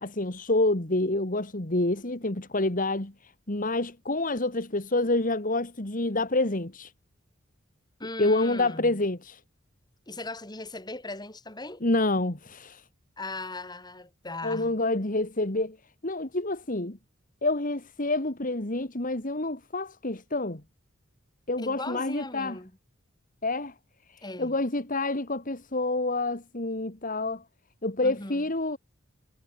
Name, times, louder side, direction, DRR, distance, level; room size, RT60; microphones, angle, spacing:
voice 1, 0.0-6.9 8.2-9.4 11.8-12.8 14.4-15.8 16.0-17.0 17.4-20.6 21.5-22.6 23.4-23.7 24.1-27.4 27.8-28.8, left 2 dB, 40° left, 2.3 m, -28 dB
voice 2, 8.0-9.0 10.1-11.8 13.2-14.8 21.6-22.7 24.2-24.6 28.0-28.4, left 2 dB, 20° left, 5.3 m, -38 dB
head